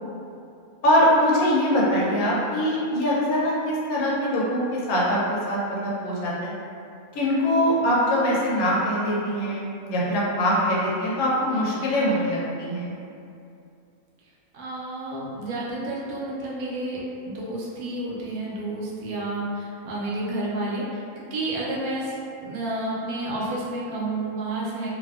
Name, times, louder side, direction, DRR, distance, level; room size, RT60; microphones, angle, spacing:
voice 1, 0.8-6.5 7.1-12.9, equal, 80° left, -5 dB, 1.1 m, -23 dB
voice 2, 14.5-24.9, right 2 dB, 80° right, -5 dB, 1.1 m, -30 dB
2.7 x 2.5 x 2.3 m, 2.6 s
omnidirectional pair, 1.5 m